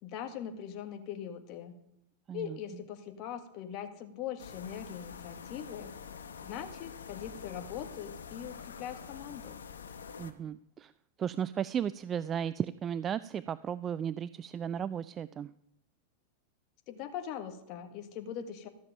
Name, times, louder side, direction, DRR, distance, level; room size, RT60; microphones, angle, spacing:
voice 1, 0.0-1.7 2.3-6.0 6.4-9.6 16.9-18.7, left 9 dB, 50° left, 6 dB, 1.4 m, -41 dB
sound 1, 4.4-10.3, left 6 dB, 85° left, 0.9 m, -46 dB
voice 2, 10.2-10.9 11.2-15.5, right 8 dB, 30° right, 16 dB, 0.3 m, -35 dB
13.5 x 7.1 x 5.4 m, 0.83 s
hypercardioid pair, 100°, 0 cm